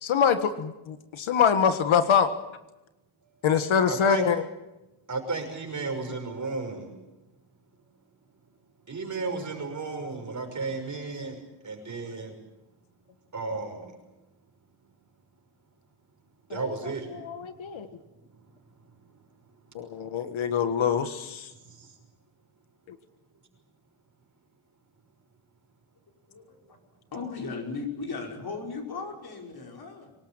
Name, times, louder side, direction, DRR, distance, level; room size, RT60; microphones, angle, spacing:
voice 1, 0.0-2.3 3.4-4.4 16.5-16.7 17.1-17.9 19.7-21.5, left 7 dB, 70° left, 9 dB, 1.6 m, -24 dB
voice 2, 3.9-4.2 5.1-6.9 8.9-11.4 11.6-12.3 13.3-13.9 16.5-17.1 21.6-21.9, right 3 dB, 35° right, 3 dB, 6.0 m, -33 dB
voice 3, 26.3-26.8 27.1-30.1, left 4 dB, 50° left, 1 dB, 5.3 m, -37 dB
24.5 x 19.0 x 9.0 m, 1.0 s
wide cardioid pair, 155°, 48 cm